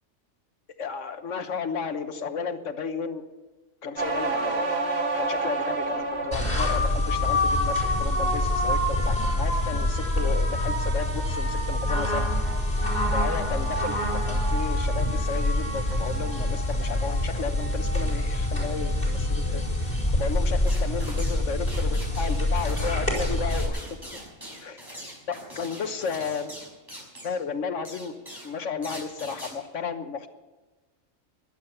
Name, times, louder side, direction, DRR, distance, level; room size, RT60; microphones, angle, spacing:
voice 1, 0.8-3.2 3.8-4.8 5.2-12.3 13.1-23.9 24.6-24.8 25.3-26.5 27.2-28.1 28.4-30.3, left 5 dB, 65° left, 9 dB, 1.4 m, -33 dB
sound 1, 4.0-6.7 7.1-7.6, right 3 dB, 50° right, 1.7 m, -28 dB
sound 2, 6.3-23.7, left 1 dB, 30° left, 4.7 m, -25 dB
sound 3, 20.7-21.4 21.7-27.4 27.8-28.5 28.8-29.5, equal, 15° right, 5.9 m, -42 dB
15.5 x 11.5 x 6.8 m, 1.2 s
omnidirectional pair, 1.4 m